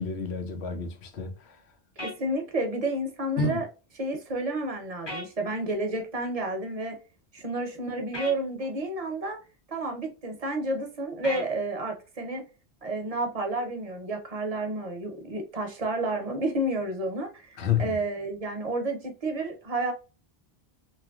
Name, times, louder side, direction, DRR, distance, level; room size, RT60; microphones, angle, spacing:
voice 1, 0.0-1.6 3.4-3.6 17.6-18.0, left 5 dB, 85° left, 0.9 m, -29 dB
sound 1, 2.0-2.2 5.1-5.3 8.1-8.4 11.2-11.5, left 1 dB, 25° left, 0.9 m, -35 dB
voice 2, 2.0-3.7 4.0-7.0 7.3-9.4 9.7-12.4 12.8-19.9, right 2 dB, 40° right, 0.7 m, -30 dB
2.9 x 2.5 x 2.2 m
omnidirectional pair, 1.1 m